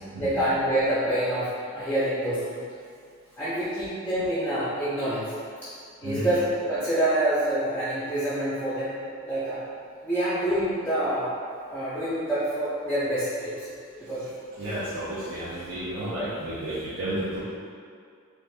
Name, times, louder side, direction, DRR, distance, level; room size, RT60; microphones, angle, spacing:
voice 1, 0.2-2.6 3.4-5.3 5.6-5.7 6.0-8.9 9.3-9.6 10.0-11.3 11.7-13.7 14.0-14.3, right 1 dB, 10° left, -12 dB, 0.5 m, -27 dB
voice 2, 14.6-17.4, right 1 dB, 70° right, -11 dB, 0.6 m, -32 dB
2.5 x 2.4 x 3.3 m, 2.3 s
head